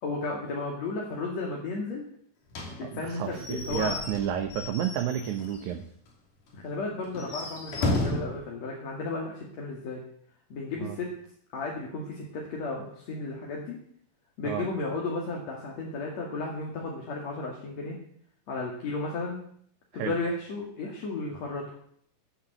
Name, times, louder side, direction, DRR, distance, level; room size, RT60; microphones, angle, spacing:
voice 1, 0.0-2.0 2.7-4.0 6.5-10.0 10.5-11.1 11.5-13.8 14.4-18.0 18.5-19.4 19.9-21.7, left 3 dB, 60° left, -2 dB, 3.4 m, -34 dB
Slam / Squeak / Wood, 2.5-5.7 6.1-6.2 6.5-6.6 7.1-8.4, left 2 dB, 80° left, 4.4 m, -33 dB
voice 2, 2.8-5.8 10.8-11.0 14.4-14.7 19.9-20.2, right 9 dB, 75° right, 5 dB, 2.3 m, -31 dB
15.0 x 8.8 x 8.1 m, 0.65 s
omnidirectional pair, 3.6 m